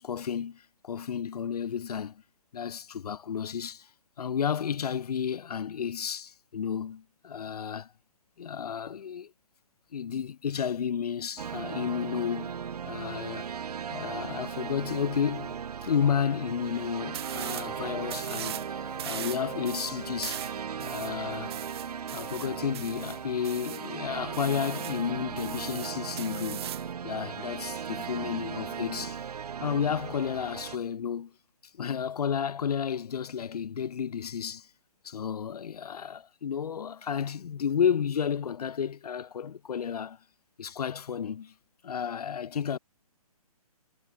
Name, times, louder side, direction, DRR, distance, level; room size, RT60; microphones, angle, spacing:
voice 1, 0.0-2.2 2.5-3.9 4.2-7.9 8.4-9.3 9.9-12.5 12.8-13.5 13.9-20.5 20.8-21.6 22.1-26.7 27.0-29.2 29.6-31.3 31.8-34.7 35.0-40.2 40.6-41.5 41.8-42.8, left 7 dB, 80° left, 0.4 m, -32 dB
sound 1, 11.4-30.8, right 7 dB, 80° right, 0.5 m, -37 dB
sound 2, 17.1-17.7 18.1-18.7 19.0-23.9 24.3-25.0 25.4-26.9, right 12 dB, 40° right, 0.6 m, -40 dB
Mallet percussion, 17.8-23.3 23.6-23.7, left 5 dB, 5° left, 1.5 m, -55 dB
hypercardioid pair, 140°, 20 cm